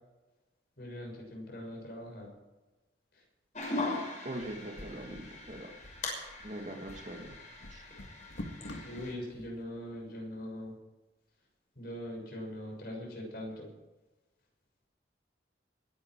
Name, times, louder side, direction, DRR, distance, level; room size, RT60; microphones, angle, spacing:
voice 1, 0.8-2.3 3.1-3.2 8.8-10.7 11.7-13.7, left 1 dB, 55° left, 0 dB, 6.5 m, -41 dB
sound 1, 3.6-9.1, left 2 dB, 40° left, 6.1 m, -40 dB
voice 2, 4.2-5.9 6.4-7.4 7.7-7.8, right 1 dB, 40° right, 3 dB, 2.2 m, -42 dB
sound 2, 4.4-9.5, left 1 dB, 85° left, 2.1 m, -47 dB
21.5 x 10.5 x 4.8 m, 1.1 s
head